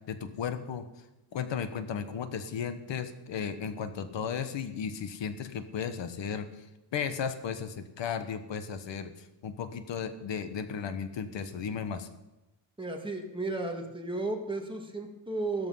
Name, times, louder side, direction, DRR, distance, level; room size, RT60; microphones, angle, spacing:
voice 1, 0.1-0.8 1.3-6.5 6.9-9.1 9.4-12.1, left 7 dB, 80° left, 9 dB, 1.4 m, -35 dB
voice 2, 12.8-15.7, right 2 dB, 10° right, 2 dB, 2.0 m, -34 dB
15.0 x 13.5 x 5.7 m, 0.97 s
wide cardioid pair, 165°, 44 cm